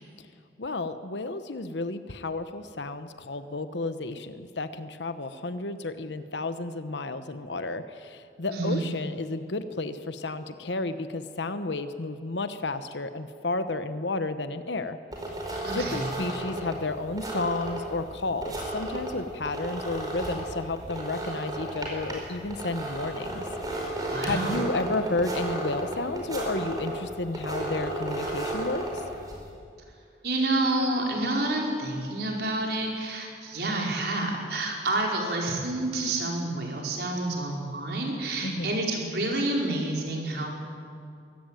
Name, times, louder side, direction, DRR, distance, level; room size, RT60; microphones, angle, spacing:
voice 1, 0.6-15.0 15.7-23.4 24.2-29.0 38.4-38.8, left 2 dB, 80° left, 10 dB, 1.0 m, -32 dB
voice 2, 8.5-8.8 15.6-16.1 24.1-24.6 30.2-40.5, right 2 dB, 65° right, 0 dB, 4.9 m, -29 dB
sound 1, 15.1-29.5, right 1 dB, 20° right, 5.1 m, -34 dB
23.0 x 18.0 x 9.2 m, 2.4 s
head